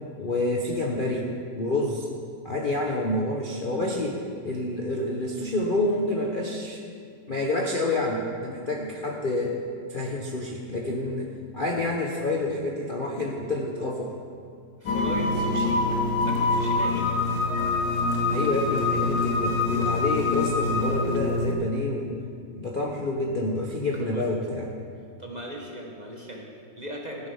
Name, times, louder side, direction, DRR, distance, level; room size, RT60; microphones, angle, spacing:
voice 1, 0.2-2.1 2.4-6.8 7.3-9.6 9.9-14.1 18.3-22.2 22.6-24.7, left 2 dB, 40° left, 0 dB, 0.8 m, -28 dB
voice 2, 14.8-15.8 16.2-17.1 24.0-24.3 25.2-27.3, equal, 25° right, -1 dB, 1.2 m, -37 dB
sound 1, 14.9-21.5, left 3 dB, 85° left, 1.9 m, -25 dB
14.0 x 8.7 x 5.6 m, 2.2 s
omnidirectional pair, 2.0 m